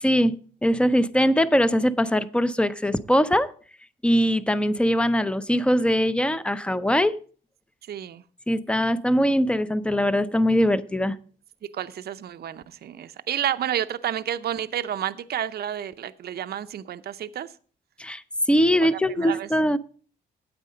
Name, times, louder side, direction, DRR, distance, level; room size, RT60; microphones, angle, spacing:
voice 1, 0.0-3.5 4.0-7.2 8.5-11.2 18.0-18.2 18.5-19.8, equal, 5° left, 0.6 m, -21 dB
voice 2, 7.9-8.2 11.7-17.5 18.8-18.9 19.2-19.5, right 10 dB, 55° right, 0.6 m, -30 dB
9.5 x 8.2 x 5.1 m
cardioid pair, 90°, 20 cm